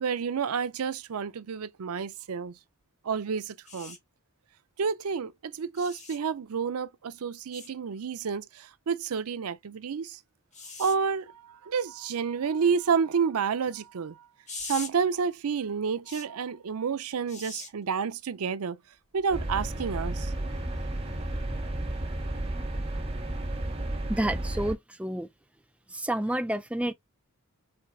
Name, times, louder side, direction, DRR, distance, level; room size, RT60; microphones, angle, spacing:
voice 1, 0.0-2.6 3.0-4.0 4.8-10.2 10.8-14.2 14.6-18.8 19.1-20.3, right 6 dB, 85° right, 0.5 m, -30 dB
sound 1, 3.7-4.0 5.8-6.2 7.5-7.7 10.5-11.0 14.5-14.9 16.1-16.3 17.3-17.7 19.2-19.3, left 4 dB, 35° left, 1.4 m, -41 dB
sound 2, 19.3-24.7, right 1 dB, 25° right, 1.5 m, -32 dB
voice 2, 24.1-25.3 25.9-26.9, right 1 dB, 5° right, 0.4 m, -29 dB
4.4 x 2.3 x 4.6 m
head